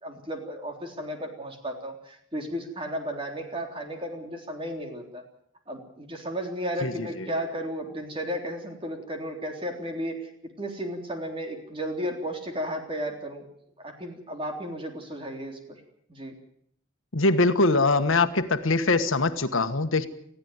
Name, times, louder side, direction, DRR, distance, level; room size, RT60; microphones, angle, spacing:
voice 1, 0.0-5.2 5.7-10.3 10.6-13.4 13.8-15.8 16.1-16.3, equal, 25° right, 3 dB, 3.6 m, -34 dB
voice 2, 6.8-7.3 17.1-20.1, left 3 dB, 80° left, 10 dB, 1.4 m, -23 dB
20.0 x 15.0 x 9.4 m, 0.70 s
head